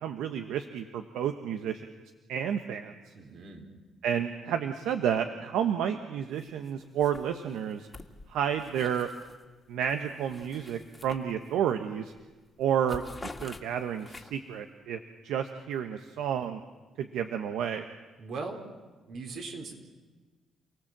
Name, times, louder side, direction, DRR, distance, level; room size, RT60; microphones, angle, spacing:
voice 1, 0.0-1.8 2.3-2.9 4.0-7.9 8.3-9.1 9.7-12.1 12.6-13.0 13.4-16.6 17.0-17.9, right 8 dB, 85° right, 7 dB, 1.1 m, -31 dB
voice 2, 3.1-3.7 18.2-18.6 19.1-19.7, right 3 dB, 65° right, 3 dB, 4.4 m, -39 dB
sound 1, 6.4-6.7 7.0-9.4 9.8-11.7 12.1-12.3 12.6-14.6, left 3 dB, 20° left, 2.0 m, -48 dB
29.0 x 18.0 x 7.5 m, 1.3 s
cardioid pair, 90°, 0 cm